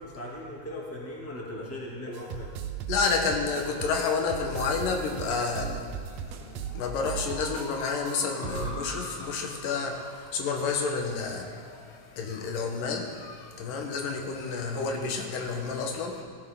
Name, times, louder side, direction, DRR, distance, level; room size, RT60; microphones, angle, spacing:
voice 1, 0.0-2.5 14.7-15.1, left 1 dB, 5° left, -4 dB, 1.9 m, -39 dB
sound 1, 2.1-7.7 8.1-8.2 8.4-8.9, right 8 dB, 80° right, 1.6 m, -37 dB
voice 2, 2.9-5.9 6.4-16.2, left 4 dB, 80° left, 3 dB, 2.8 m, -30 dB
sound 2, 6.0-12.9, left 1 dB, 60° left, 4.1 m, -46 dB
16.5 x 16.0 x 3.8 m, 2.2 s
omnidirectional pair, 3.9 m